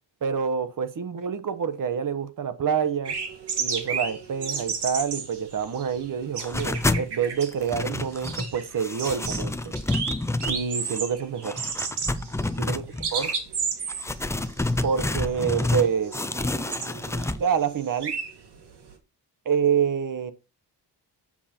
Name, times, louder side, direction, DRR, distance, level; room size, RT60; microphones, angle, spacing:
voice 1, 0.2-3.1 3.6-9.7 10.4-11.6 12.6-12.8 13.1-13.3 14.8-16.2 17.4-18.1 19.5-20.3, right 7 dB, 50° right, 1.1 m, -27 dB
sound 1, 3.0-18.9, right 5 dB, 70° right, 2.3 m, -33 dB
sound 2, 6.4-7.1 7.4-8.5 8.8-11.0 11.4-13.3 13.9-15.9 16.1-17.4, left 2 dB, 5° left, 0.4 m, -28 dB
7.3 x 7.3 x 4.3 m
wide cardioid pair, 150°, 42 cm